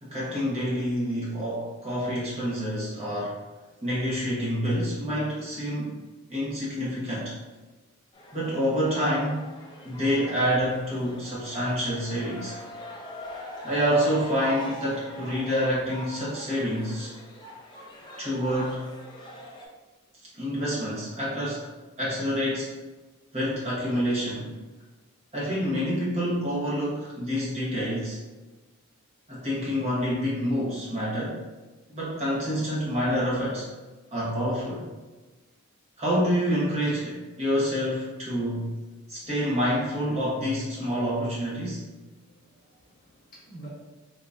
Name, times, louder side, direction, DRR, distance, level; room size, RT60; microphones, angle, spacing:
voice 1, 0.0-3.4 3.8-6.0 6.3-7.3 8.3-9.4 9.8-12.6 13.6-17.1 18.2-18.8 20.4-21.7 22.0-22.7 23.3-24.5 25.3-28.2 29.3-31.4 31.9-33.7 34.1-34.8 36.0-38.8 39.1-41.8, equal, 30° right, -8 dB, 1.2 m, -27 dB
sound 1, 8.1-19.7, equal, 20° left, 0.5 m, -42 dB
voice 2, 42.2-43.7, right 2 dB, 40° left, -7 dB, 1.0 m, -48 dB
3.5 x 2.9 x 2.6 m, 1.2 s
head